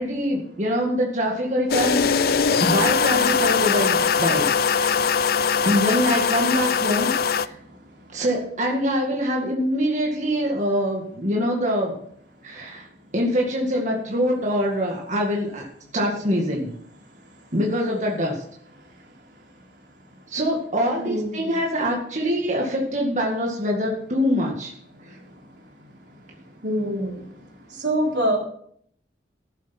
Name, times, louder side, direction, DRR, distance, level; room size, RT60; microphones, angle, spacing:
voice 1, 0.0-2.0 2.5-5.1 5.7-7.6 8.1-12.0 12.4-12.9 13.1-15.7 15.9-16.7 17.5-18.4 20.3-24.7 25.1-25.2, equal, 45° right, -1 dB, 2.0 m, -24 dB
sound 1, 1.7-7.5, left 6 dB, 55° left, 0.5 m, -21 dB
voice 2, 21.0-21.4 26.6-27.1 27.8-28.4, equal, 80° right, 0 dB, 3.7 m, -24 dB
14.5 x 8.2 x 6.0 m, 0.66 s
head